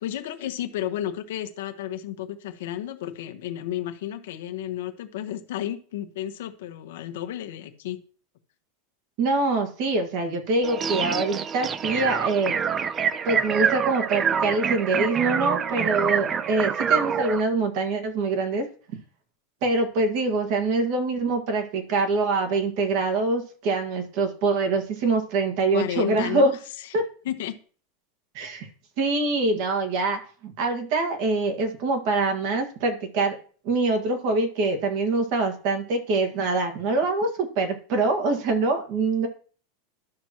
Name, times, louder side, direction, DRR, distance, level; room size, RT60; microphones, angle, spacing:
voice 1, 0.0-8.0 25.7-26.9 27.2-27.6, left 11 dB, 75° left, 7 dB, 1.1 m, -32 dB
voice 2, 9.2-12.6 13.3-18.7 19.6-26.5 26.9-27.0 28.4-28.7 29.0-33.4 33.7-39.3, right 3 dB, 50° right, 4 dB, 1.8 m, -24 dB
sound 1, 10.6-17.4, right 7 dB, 20° right, 0.4 m, -26 dB
12.0 x 6.0 x 3.0 m, 0.42 s
supercardioid pair, 155°, 0 cm